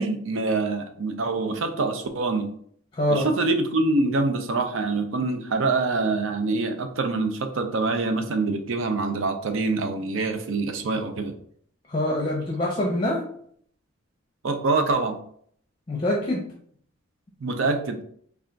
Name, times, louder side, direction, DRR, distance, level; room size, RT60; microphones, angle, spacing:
voice 1, 0.0-2.5 3.1-11.3 14.4-15.2 17.4-18.0, right 3 dB, 75° right, 7 dB, 0.5 m, -25 dB
voice 2, 2.9-3.3 11.9-13.2 15.9-16.4, left 1 dB, 25° left, -1 dB, 0.5 m, -24 dB
3.3 x 2.3 x 3.8 m, 0.63 s
head